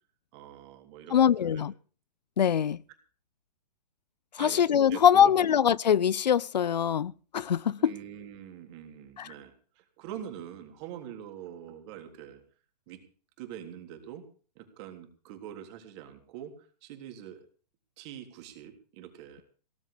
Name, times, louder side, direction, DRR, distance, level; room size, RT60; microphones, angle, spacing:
voice 1, 0.3-1.6 4.4-5.3 7.8-12.4 12.9-13.0 13.4-14.3 14.6-17.5 18.0-19.4, right 10 dB, 40° right, 3.5 m, -44 dB
voice 2, 1.1-1.7 2.4-2.8 4.3-7.9 9.2-9.3, left 9 dB, 85° left, 0.6 m, -23 dB
18.0 x 7.8 x 8.6 m
hypercardioid pair, 135°, 21 cm